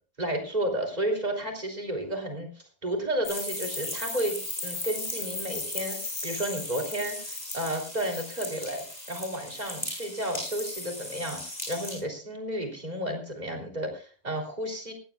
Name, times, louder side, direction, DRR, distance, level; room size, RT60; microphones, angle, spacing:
voice 1, 0.2-2.5 2.8-11.4 11.7-14.9, right 1 dB, 30° right, 1 dB, 3.5 m, -32 dB
sound 1, 3.2-12.0, left 2 dB, 30° left, 7.4 m, -36 dB
19.0 x 16.5 x 2.4 m, 0.38 s
omnidirectional pair, 1.4 m